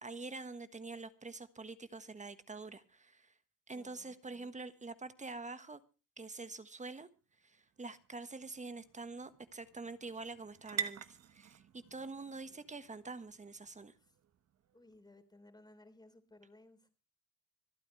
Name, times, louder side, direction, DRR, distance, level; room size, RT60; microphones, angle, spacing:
voice 1, 0.0-3.3 3.7-5.8 6.2-7.1 7.4-13.9, right 3 dB, 25° right, 1.4 m, -46 dB
voice 2, 3.7-4.6 14.0-14.2 14.7-16.9, left 2 dB, 15° left, 3.4 m, -61 dB
sound 1, 7.2-15.0, right 8 dB, 55° right, 1.3 m, -48 dB
26.0 x 9.1 x 3.2 m
cardioid pair, 90°, 30 cm